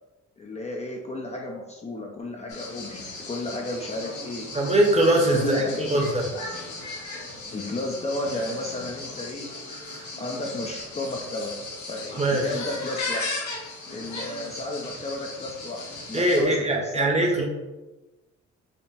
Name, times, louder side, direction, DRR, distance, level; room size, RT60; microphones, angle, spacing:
voice 1, 0.4-4.5 5.3-6.0 7.5-9.5 10.2-11.6 11.9-13.3 13.9-17.4, left 2 dB, 20° left, 0 dB, 0.5 m, -33 dB
sound 1, 2.5-16.4, left 2 dB, 75° left, 1.2 m, -37 dB
voice 2, 4.5-6.3 9.9-10.1 12.2-12.5 16.1-17.4, right 1 dB, 20° right, 1 dB, 0.9 m, -22 dB
5.5 x 2.1 x 3.3 m, 1.1 s
cardioid pair, 90°, 30 cm